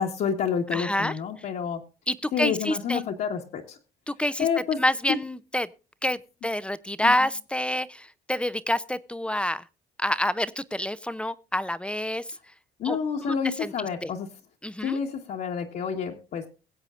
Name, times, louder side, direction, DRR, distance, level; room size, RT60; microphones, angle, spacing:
voice 1, 0.0-1.8 2.3-3.8 4.4-4.8 5.1-5.2 7.0-7.1 12.8-14.3 14.8-16.5, left 7 dB, 60° left, 1.5 m, -28 dB
voice 2, 0.7-1.2 2.1-3.0 4.1-4.5 4.8-5.7 6.0-9.7 10.0-12.4 12.8-14.1 14.6-15.0, left 1 dB, 5° left, 0.5 m, -28 dB
22.0 x 8.1 x 2.5 m
cardioid pair, 110°, 17 cm